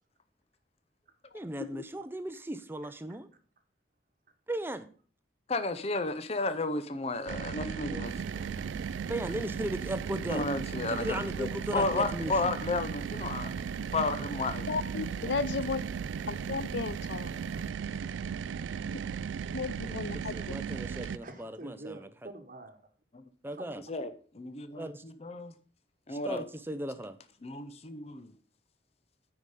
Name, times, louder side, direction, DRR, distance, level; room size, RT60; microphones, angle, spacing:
voice 1, 1.3-3.3 4.5-4.9 9.1-10.4 10.9-12.3 15.2-15.3 19.8-20.0 20.3-22.1 23.4-23.8 24.8-24.9 26.1-27.1, right 1 dB, 10° right, 0.5 m, -36 dB
voice 2, 5.5-8.1 10.3-13.5 13.9-14.7 23.9-24.5 25.2-25.5 26.1-26.5 27.4-28.3, left 3 dB, 35° left, 0.7 m, -32 dB
sound 1, 7.3-21.2, right 7 dB, 85° right, 0.3 m, -36 dB
voice 3, 7.8-8.9 21.2-22.8 23.5-23.7, right 2 dB, 45° right, 1.2 m, -47 dB
sound 2, 8.0-17.7, right 2 dB, 70° right, 1.3 m, -52 dB
voice 4, 14.7-15.8 16.3-17.3 19.5-20.4, left 4 dB, 75° left, 0.5 m, -34 dB
9.7 x 4.9 x 5.3 m
head